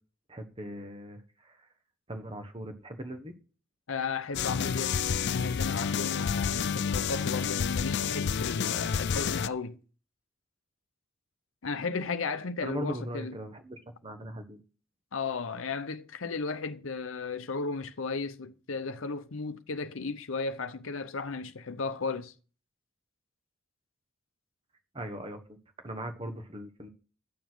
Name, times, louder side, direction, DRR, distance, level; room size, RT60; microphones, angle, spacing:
voice 1, 0.3-1.7 2.1-3.3 12.6-14.6 24.9-25.6 25.8-26.9, right 1 dB, 25° right, 1.3 m, -39 dB
voice 2, 3.9-5.0 5.3-9.8 11.6-13.4 15.1-22.3, left 4 dB, 70° left, 0.8 m, -35 dB
sound 1, 4.3-9.5, left 7 dB, 55° left, 0.4 m, -29 dB
11.5 x 7.2 x 6.1 m
head